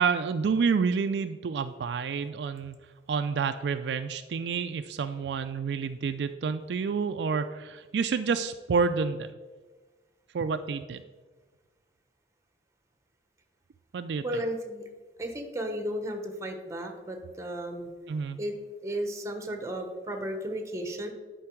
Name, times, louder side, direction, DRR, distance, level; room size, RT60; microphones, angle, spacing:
voice 1, 0.0-2.8 3.1-9.3 10.3-11.0 13.9-14.2 18.1-18.4, right 5 dB, 70° right, 9 dB, 0.3 m, -29 dB
voice 2, 14.2-14.8 15.2-17.9 18.4-18.5 18.8-21.1, right 1 dB, 15° right, 5 dB, 1.0 m, -34 dB
11.0 x 4.6 x 4.5 m, 1.4 s
head